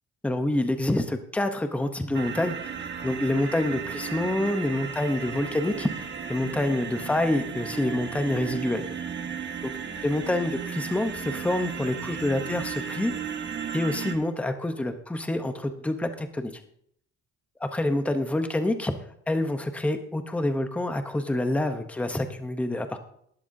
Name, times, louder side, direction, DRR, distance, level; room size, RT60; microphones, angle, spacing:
voice 1, 0.2-2.7 3.0-8.8 9.6-9.7 10.0-13.1 13.7-16.5 17.6-18.9 19.3-23.0, left 1 dB, 5° left, 7 dB, 0.7 m, -27 dB
sound 1, 2.1-14.1, right 7 dB, 35° right, 1.4 m, -35 dB
19.0 x 11.0 x 2.6 m, 0.68 s
cardioid pair, 170°, 31 cm